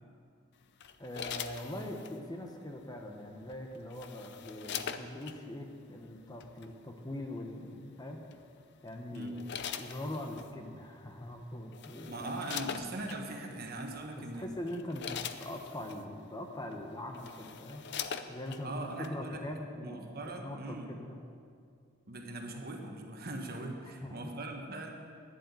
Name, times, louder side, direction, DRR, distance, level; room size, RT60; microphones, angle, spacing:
sound 1, 0.8-2.2 3.5-5.4 6.4-6.7 8.3-8.6 9.1-10.5 11.3-11.4 11.7-13.2 13.9-14.1 14.5-16.0 16.7-16.8 17.1-18.6 19.0-19.1, left 8 dB, 55° left, 0.5 m, -42 dB
voice 1, 1.0-8.3 8.8-9.4 9.8-12.6 14.1-20.0 20.4-21.2 24.0-24.3, left 1 dB, 20° left, 3 dB, 0.9 m, -42 dB
voice 2, 9.1-9.4 12.0-14.5 18.6-19.4 19.8-20.9 22.1-24.9, right 2 dB, 45° right, 2 dB, 1.3 m, -40 dB
10.5 x 7.9 x 8.2 m, 2.3 s
head